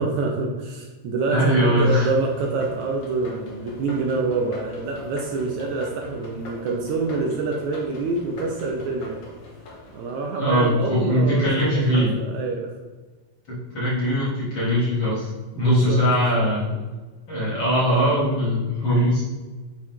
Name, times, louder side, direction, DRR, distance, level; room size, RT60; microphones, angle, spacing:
voice 1, 0.0-9.2 9.9-12.7 15.6-16.1, right 3 dB, 70° right, 0 dB, 2.1 m, -26 dB
voice 2, 1.3-2.1 10.4-12.1 13.5-16.6 17.3-19.2, equal, 40° left, -8 dB, 3.2 m, -21 dB
sound 1, 2.0-11.1, left 1 dB, 60° left, 1.2 m, -42 dB
8.5 x 4.3 x 4.5 m, 1.3 s
omnidirectional pair, 3.7 m